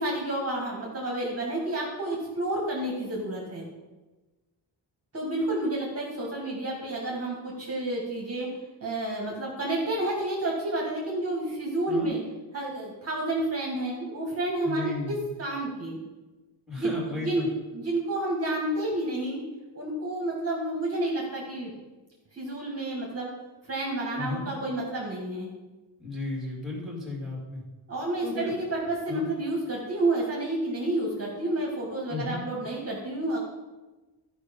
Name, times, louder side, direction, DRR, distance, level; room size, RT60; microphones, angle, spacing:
voice 1, 0.0-3.7 5.1-8.5 8.8-12.2 12.5-16.0 16.8-19.4 19.7-21.7 22.3-23.3 23.7-25.5 27.9-33.4, right 1 dB, 30° right, -2 dB, 1.7 m, -30 dB
voice 2, 14.6-15.2 16.7-17.5 24.1-24.4 26.0-27.6 28.2-28.5 29.1-29.2 32.1-32.4, left 3 dB, ahead, -3 dB, 2.5 m, -34 dB
13.5 x 5.3 x 5.3 m, 1.2 s
wide cardioid pair, 175°, 46 cm